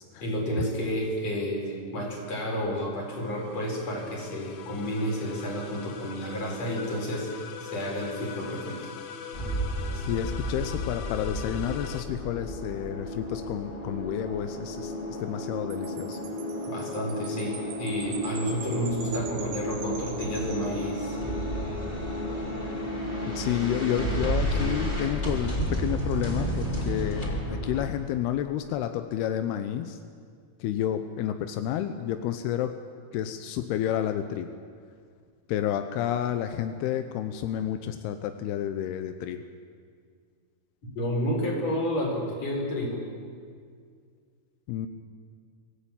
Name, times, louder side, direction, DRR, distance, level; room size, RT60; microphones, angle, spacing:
voice 1, 0.2-7.3 7.6-8.8 16.7-21.2 41.0-43.0, equal, 40° left, 0 dB, 5.4 m, -30 dB
sound 1, 3.0-12.0, left 7 dB, 65° left, 2.0 m, -42 dB
sound 2, 9.3-27.9, equal, 15° left, 3.2 m, -32 dB
voice 2, 9.9-14.9 15.2-16.2 23.3-30.0 30.6-32.8 33.1-34.5 35.5-39.4 44.7-44.9, left 11 dB, 85° left, 8 dB, 2.8 m, -30 dB
Wind chime, 15.7-21.4, right 6 dB, 85° right, 4.0 m, -44 dB
24.5 x 15.0 x 8.9 m, 2.1 s
omnidirectional pair, 4.5 m